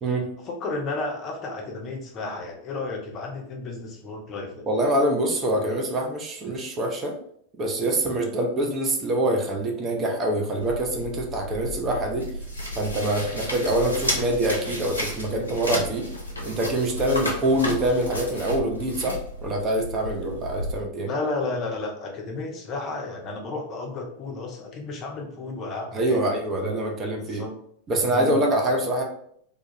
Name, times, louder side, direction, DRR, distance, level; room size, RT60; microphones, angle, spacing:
voice 1, 0.4-4.7 21.0-26.2 27.2-27.5 28.1-28.3, left 3 dB, 30° left, 1 dB, 0.5 m, -32 dB
voice 2, 4.7-7.1 7.6-12.3 12.8-16.1 16.4-21.1 25.9-27.4 27.9-29.0, right 1 dB, 25° right, 1 dB, 0.5 m, -25 dB
sound 1, 10.6-20.7, left 1 dB, 80° left, 0.6 m, -32 dB
2.2 x 2.1 x 2.7 m, 0.66 s
figure-of-eight pair, 90°, 0 cm